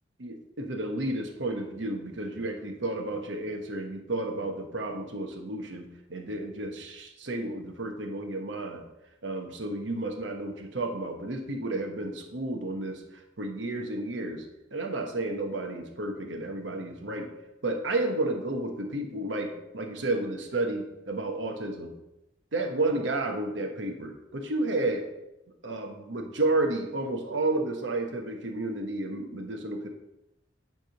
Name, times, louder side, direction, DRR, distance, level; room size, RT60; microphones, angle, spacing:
voice 1, 0.2-8.8 9.2-13.0 13.4-14.4 14.7-17.3 17.6-21.9 22.5-25.1 25.6-29.9, right 2 dB, 80° right, 4 dB, 1.1 m, -31 dB
9.3 x 3.5 x 5.7 m, 0.90 s
head